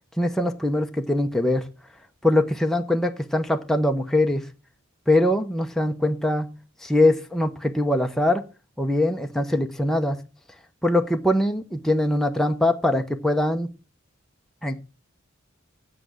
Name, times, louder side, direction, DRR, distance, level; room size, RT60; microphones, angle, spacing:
voice 1, 0.2-1.6 2.2-4.4 5.1-6.5 6.8-8.4 8.8-10.2 10.8-13.7 14.6-14.8, left 1 dB, ahead, 4 dB, 0.8 m, -22 dB
7.7 x 7.6 x 6.2 m, 0.33 s
head